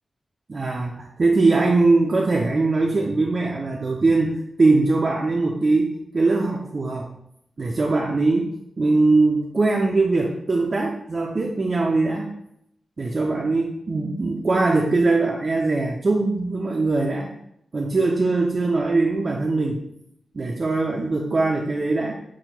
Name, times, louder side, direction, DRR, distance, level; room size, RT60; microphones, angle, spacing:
voice 1, 0.5-5.9 6.1-7.1 7.6-8.5 8.8-12.3 13.0-17.3 17.7-19.8 20.3-22.1, right 3 dB, 40° right, -1 dB, 0.4 m, -21 dB
5.9 x 2.1 x 2.8 m, 0.77 s
wide cardioid pair, 145°, 0 cm